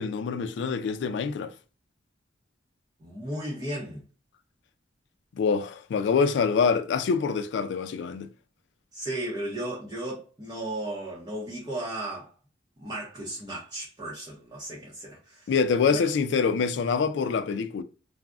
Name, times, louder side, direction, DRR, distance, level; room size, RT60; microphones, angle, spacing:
voice 1, 0.0-1.5 5.3-8.3 15.5-17.8, left 5 dB, 70° left, 0.3 m, -25 dB
voice 2, 3.0-4.0 8.9-12.3 12.8-15.5 15.9-16.1, right 1 dB, 25° right, 0.6 m, -35 dB
2.4 x 2.0 x 3.4 m
head